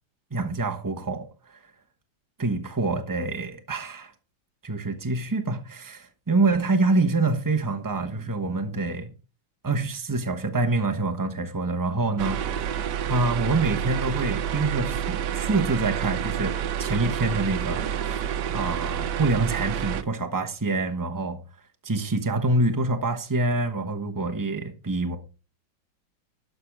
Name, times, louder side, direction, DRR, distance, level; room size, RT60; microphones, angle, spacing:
voice 1, 0.3-1.6 2.4-4.1 4.6-9.1 9.6-12.7 13.1-16.5 16.8-17.8 18.1-18.2 18.5-21.4 21.8-25.2, right 3 dB, 30° right, 0.3 m, -26 dB
sound 1, 12.2-20.0, right 9 dB, 65° right, 1.2 m, -29 dB
12.0 x 6.7 x 4.7 m
omnidirectional pair, 2.4 m